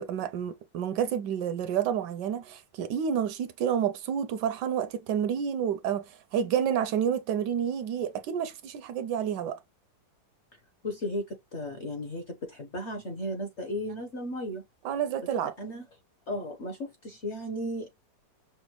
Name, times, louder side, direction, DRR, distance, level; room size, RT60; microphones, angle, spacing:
voice 1, 0.0-9.6 14.8-15.5, right 8 dB, 75° right, 1.1 m, -29 dB
voice 2, 10.5-14.6 15.6-15.8 16.3-18.0, left 1 dB, 50° left, 0.8 m, -35 dB
6.0 x 2.1 x 3.0 m
omnidirectional pair, 2.0 m